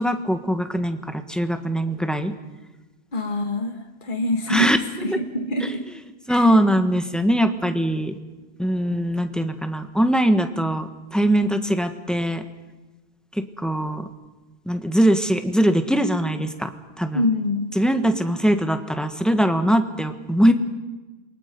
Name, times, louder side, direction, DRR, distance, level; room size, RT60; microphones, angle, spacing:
voice 1, 0.0-2.3 4.5-4.8 5.0-5.2 5.6-5.7 6.3-8.1 8.6-12.4 13.6-14.1 14.7-16.7 17.0-17.2 17.7-20.5, equal, ahead, 7 dB, 1.4 m, -21 dB
voice 2, 3.1-4.7 5.0-5.2 5.5-5.8 6.3-6.5 17.1-17.7, left 2 dB, 50° left, 3 dB, 2.1 m, -25 dB
28.0 x 23.5 x 5.4 m, 1.2 s
omnidirectional pair, 1.1 m